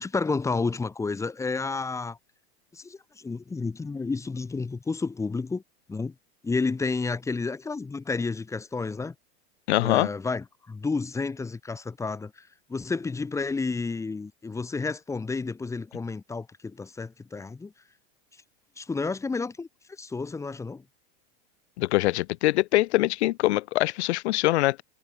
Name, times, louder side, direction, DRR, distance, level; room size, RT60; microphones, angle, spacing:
voice 1, 0.0-2.2 2.7-5.6 5.9-6.1 6.4-9.1 9.8-17.7 18.8-19.7 20.0-20.8, left 4 dB, 10° left, 1.6 m, -31 dB
voice 2, 9.7-10.1 21.8-24.8, left 18 dB, 85° left, 0.6 m, -23 dB
supercardioid pair, 150°, 33 cm